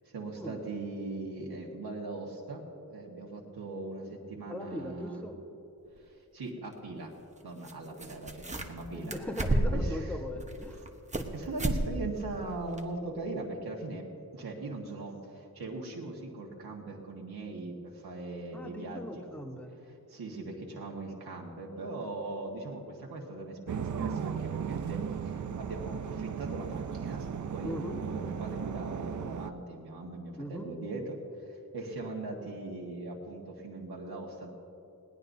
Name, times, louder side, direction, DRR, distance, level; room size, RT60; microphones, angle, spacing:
voice 1, 0.0-5.2 6.0-7.1 7.4-9.1 9.5-10.2 11.3-14.0 14.3-19.2 19.8-27.3 27.5-31.2 31.5-34.5, right 2 dB, 80° right, -2 dB, 1.7 m, -40 dB
voice 2, 4.5-5.4 8.9-10.8 11.2-11.3 18.5-19.8 27.6-28.0 30.4-30.7, left 1 dB, 5° left, 3 dB, 1.2 m, -39 dB
sound 1, 6.0-6.1 7.6-7.7 8.0-8.8 9.1-9.9 10.4-11.3 11.6-11.8 12.2-12.3 12.8-12.9, right 1 dB, 20° right, 1.0 m, -30 dB
sound 2, 23.7-29.5, right 7 dB, 50° right, 0.5 m, -36 dB
20.5 x 18.0 x 2.7 m, 2.8 s
wide cardioid pair, 105°, 37 cm